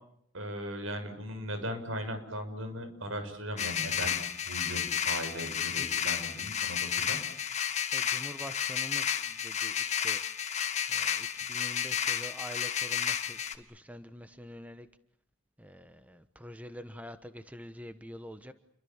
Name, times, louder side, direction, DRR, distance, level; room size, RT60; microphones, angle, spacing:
voice 1, 0.3-7.5, equal, 75° right, 8 dB, 6.8 m, -38 dB
sound 1, 3.6-13.5, left 8 dB, 35° left, 2.0 m, -32 dB
voice 2, 7.9-10.2 10.9-14.9 15.6-18.5, equal, 5° right, 10 dB, 1.2 m, -46 dB
30.0 x 24.0 x 7.3 m, 0.69 s
head